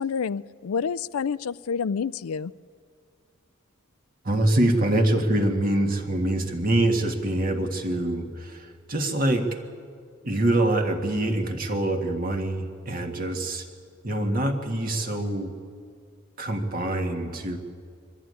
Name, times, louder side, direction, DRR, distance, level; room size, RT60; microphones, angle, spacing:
voice 1, 0.0-2.5, left 6 dB, 80° left, 19 dB, 0.4 m, -28 dB
voice 2, 4.2-9.5 10.2-13.6 14.0-15.5 16.4-17.6, right 1 dB, 40° right, 4 dB, 1.6 m, -25 dB
22.5 x 14.0 x 9.5 m, 2.2 s
head